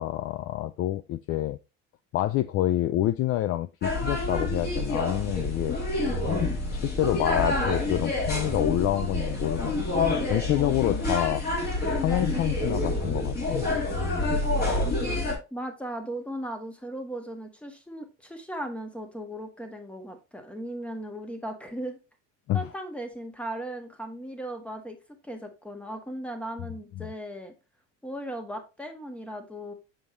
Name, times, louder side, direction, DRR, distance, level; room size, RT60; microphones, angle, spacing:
voice 1, 0.0-1.6 2.1-5.8 6.7-11.4 12.0-13.7 22.5-22.7 27.0-27.1, left 14 dB, 45° left, 0.4 m, -27 dB
sound 1, 3.8-15.3, left 2 dB, 30° left, 2.9 m, -27 dB
voice 2, 15.5-22.0 22.5-25.0 25.2-27.5 28.0-29.7, right 1 dB, 5° left, 1.5 m, -37 dB
6.9 x 5.5 x 3.2 m
supercardioid pair, 115°, 33 cm